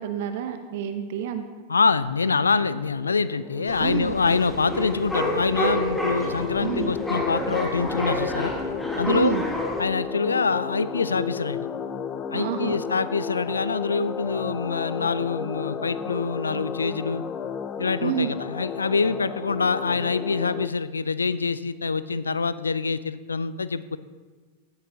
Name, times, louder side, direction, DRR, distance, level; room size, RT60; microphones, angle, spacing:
voice 1, 0.0-1.4 3.8-4.2 6.6-6.9 9.1-9.4 12.3-12.8 18.0-18.3, right 9 dB, 50° right, 8 dB, 0.7 m, -28 dB
voice 2, 1.7-8.5 9.0-9.4 9.8-11.7 12.3-17.2 17.8-24.0, left 4 dB, 75° left, 16 dB, 0.3 m, -25 dB
sound 1, 2.2-20.7, left 7 dB, 30° left, 0.6 m, -34 dB
sound 2, 3.7-9.8, equal, 10° left, 1.5 m, -29 dB
16.0 x 8.4 x 2.8 m, 1.4 s
figure-of-eight pair, 90°, 0 cm